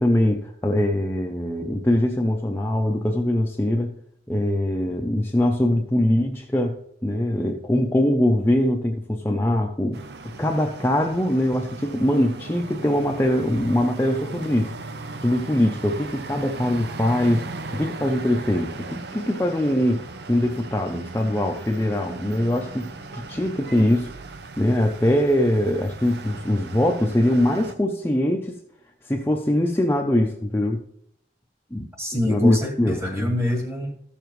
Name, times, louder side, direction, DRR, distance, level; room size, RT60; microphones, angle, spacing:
voice 1, 0.0-3.9 4.3-6.8 7.0-10.0 10.4-14.7 15.2-17.4 17.7-24.1 24.6-28.6 29.1-30.8 31.7-31.9 32.3-33.3, left 1 dB, 15° left, 1 dB, 0.6 m, -22 dB
sound 1, 9.9-27.7, right 3 dB, 70° right, 0.6 m, -38 dB
voice 2, 32.0-34.0, left 1 dB, 15° right, 2 dB, 1.4 m, -26 dB
14.0 x 6.9 x 3.1 m, 0.70 s
head